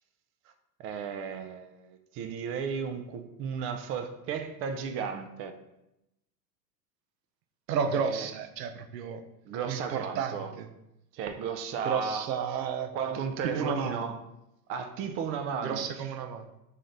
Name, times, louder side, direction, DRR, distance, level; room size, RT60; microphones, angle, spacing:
voice 1, 0.8-5.5 7.9-8.3 9.5-10.5 11.1-12.3 12.9-14.1 14.7-15.8, right 6 dB, 30° right, 7 dB, 0.4 m, -34 dB
voice 2, 7.7-9.2 9.7-10.7 11.8-12.9 13.4-14.1 15.6-16.5, right 7 dB, 80° right, 9 dB, 0.7 m, -32 dB
4.0 x 3.1 x 3.8 m, 0.88 s
hypercardioid pair, 95°, 49 cm